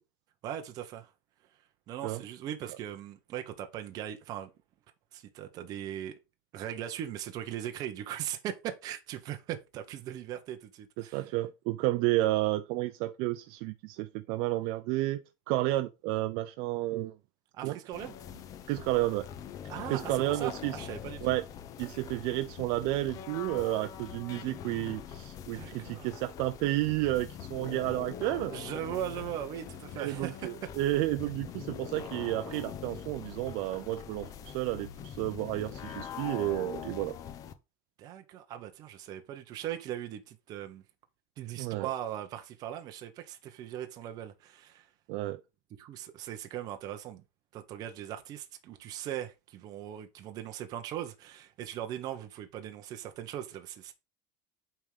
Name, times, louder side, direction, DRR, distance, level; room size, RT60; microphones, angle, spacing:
voice 1, 0.4-1.1 1.9-4.5 5.1-6.2 6.5-11.3 17.5-18.1 19.7-21.3 25.5-26.1 28.5-30.5 38.0-40.8 41.4-44.9 45.7-47.2 47.5-53.9, right 11 dB, 40° right, 1.1 m, -39 dB
voice 2, 11.0-17.2 17.6-17.8 18.7-19.3 19.9-20.8 21.2-21.4 21.8-28.5 30.0-37.2 41.6-41.9 45.1-45.4, right 17 dB, 60° right, 0.5 m, -31 dB
sound 1, 17.9-37.5, left 8 dB, 35° left, 0.9 m, -43 dB
8.9 x 3.7 x 5.0 m
cardioid pair, 155°, 10 cm